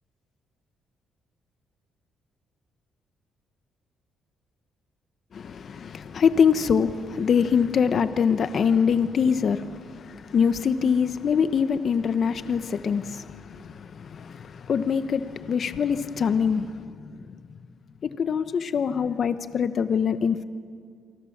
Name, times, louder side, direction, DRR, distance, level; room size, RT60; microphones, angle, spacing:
voice 1, 5.3-17.2 18.0-20.4, left 6 dB, 55° left, 11 dB, 1.0 m, -24 dB
28.5 x 24.5 x 7.3 m, 2.1 s
cardioid pair, 90°, 0 cm